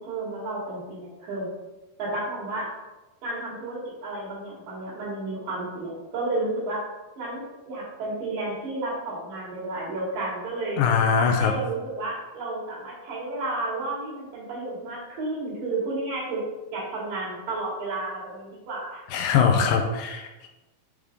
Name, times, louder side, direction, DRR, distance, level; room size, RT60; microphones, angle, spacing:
voice 1, 0.0-1.5 2.0-2.7 3.2-6.8 7.2-10.8 11.2-16.4 16.7-19.0, right 2 dB, 75° right, -6 dB, 4.0 m, -32 dB
voice 2, 10.8-11.5 19.1-20.5, left 6 dB, 85° left, 4 dB, 2.3 m, -22 dB
7.1 x 3.6 x 5.1 m, 1.1 s
omnidirectional pair, 4.0 m